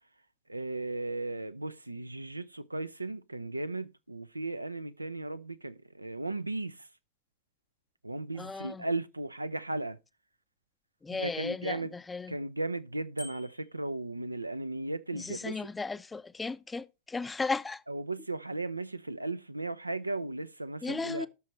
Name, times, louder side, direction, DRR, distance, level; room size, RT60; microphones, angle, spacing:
voice 1, 0.5-6.9 8.0-10.0 11.1-11.9 12.3-15.6 17.9-21.3, right 2 dB, 85° right, 0.6 m, -36 dB
voice 2, 8.4-8.9 11.0-12.4 15.1-17.8 20.8-21.3, left 4 dB, 10° left, 0.6 m, -35 dB
Bicycle bell, 13.2-13.8, left 1 dB, 85° left, 4.0 m, -46 dB
17.5 x 6.3 x 3.1 m
figure-of-eight pair, 90°, 0 cm